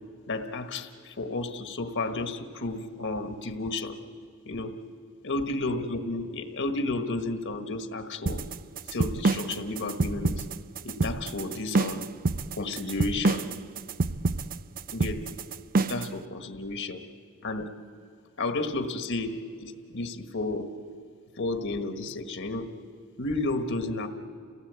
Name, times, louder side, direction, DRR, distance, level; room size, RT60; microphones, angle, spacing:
voice 1, 0.3-4.0 4.4-4.8 5.2-8.4 8.9-10.4 10.8-12.1 12.5-13.5 14.9-15.3 15.7-17.0 17.4-17.7 18.4-20.7 21.4-22.7 23.2-24.1, left 2 dB, 60° left, 8 dB, 1.4 m, -32 dB
sound 1, 8.3-16.1, right 3 dB, 40° right, 0.5 m, -27 dB
29.0 x 17.0 x 8.1 m, 2.4 s
head